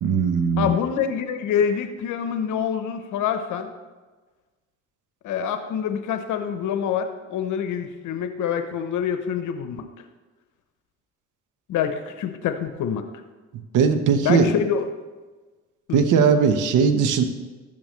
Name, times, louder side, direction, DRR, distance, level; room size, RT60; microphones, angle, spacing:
voice 1, 0.0-0.7 13.7-14.5 15.9-17.2, right 6 dB, 80° right, 8 dB, 1.0 m, -19 dB
voice 2, 0.6-3.7 5.2-9.9 11.7-13.0 14.2-14.9 15.9-16.0, left 8 dB, 85° left, 8 dB, 0.8 m, -26 dB
12.0 x 8.7 x 3.1 m, 1.3 s
cardioid pair, 90°, 30 cm